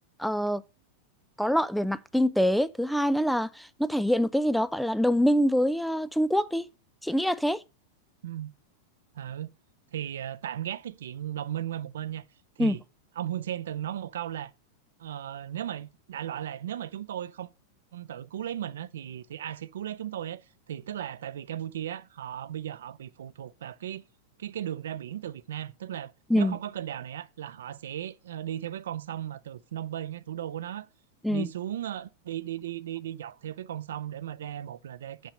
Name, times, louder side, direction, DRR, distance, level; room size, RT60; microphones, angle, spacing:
voice 1, 0.2-0.6 1.4-6.7 7.0-7.6 12.6-12.8 26.3-26.5 31.2-31.5, equal, ahead, 0.4 m, -25 dB
voice 2, 9.1-9.5 9.9-12.2 12.6-12.8 13.2-14.5 15.0-17.5 17.9-24.0 24.4-30.9 31.3-35.3, right 11 dB, 85° right, 0.6 m, -36 dB
6.0 x 5.6 x 6.2 m
hypercardioid pair, 130°, 0 cm